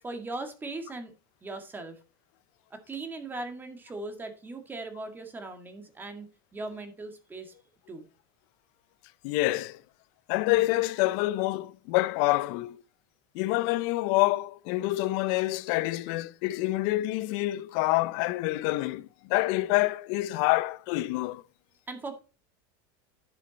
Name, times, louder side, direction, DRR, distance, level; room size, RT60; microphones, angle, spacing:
voice 1, 0.0-1.1 1.4-1.9 2.7-7.5 7.9-8.0 21.9-22.2, right 2 dB, 15° right, 2.0 m, -39 dB
voice 2, 9.2-9.8 10.3-12.8 13.3-21.4, left 18 dB, 65° left, 0.6 m, -27 dB
10.5 x 6.5 x 4.1 m
supercardioid pair, 120°, 12 cm